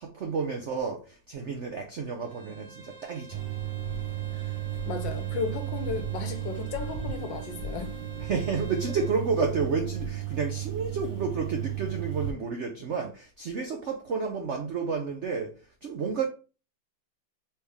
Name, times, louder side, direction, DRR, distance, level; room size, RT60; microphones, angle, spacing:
voice 1, 0.1-3.4 8.2-15.5 15.8-16.2, right 5 dB, 75° right, 0.6 m, -31 dB
Bowed string instrument, 2.2-9.2, right 2 dB, 40° right, 1.5 m, -49 dB
sound 1, 3.3-12.3, right 11 dB, 55° right, 2.0 m, -34 dB
voice 2, 4.8-7.9, left 5 dB, 80° left, 1.5 m, -35 dB
4.4 x 3.3 x 3.5 m
omnidirectional pair, 2.1 m